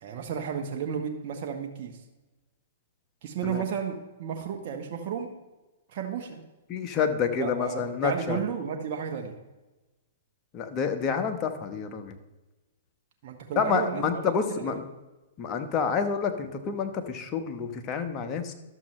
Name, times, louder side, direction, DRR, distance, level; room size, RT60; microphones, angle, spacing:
voice 1, 0.0-2.0 3.2-5.3 5.9-6.4 7.4-9.3 13.2-14.1 14.5-14.8, right 7 dB, 50° right, 2 dB, 1.1 m, -33 dB
voice 2, 6.7-8.4 10.5-12.2 13.6-14.8 15.4-18.5, left 6 dB, 30° left, 6 dB, 1.1 m, -28 dB
12.0 x 7.3 x 3.2 m, 1.1 s
hypercardioid pair, 120°, 0 cm